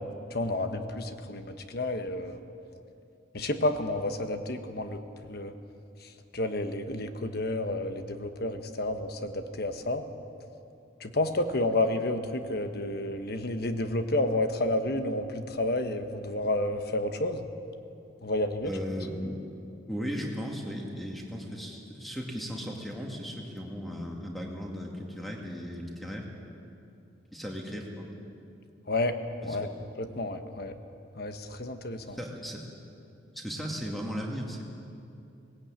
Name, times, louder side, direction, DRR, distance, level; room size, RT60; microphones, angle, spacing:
voice 1, 0.3-2.4 3.3-5.0 5.3-5.5 6.3-10.0 11.0-17.5 18.2-18.7 28.9-29.2 29.5-29.7 30.0-30.7 31.2-32.2, left 2 dB, 50° left, 7 dB, 1.2 m, -30 dB
voice 2, 18.6-19.4 19.9-26.3 27.3-28.1 29.4-29.7 32.0-32.7 33.3-34.6, equal, ahead, 0 dB, 2.3 m, -36 dB
19.0 x 16.5 x 8.9 m, 2.7 s
head